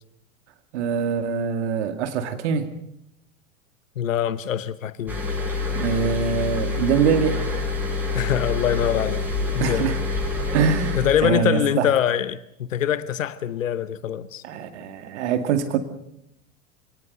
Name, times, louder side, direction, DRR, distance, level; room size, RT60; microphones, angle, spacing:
voice 1, 0.7-2.7 5.7-7.4 9.6-10.0 10.5-11.9 14.4-15.8, right 7 dB, 55° right, 2.2 m, -24 dB
voice 2, 4.0-5.2 8.1-9.2 9.5-9.9 10.9-14.4, left 10 dB, 65° left, 1.0 m, -24 dB
sound 1, 5.1-11.2, left 3 dB, 5° right, 7.6 m, -26 dB
28.5 x 18.5 x 6.6 m
figure-of-eight pair, 90°, 42 cm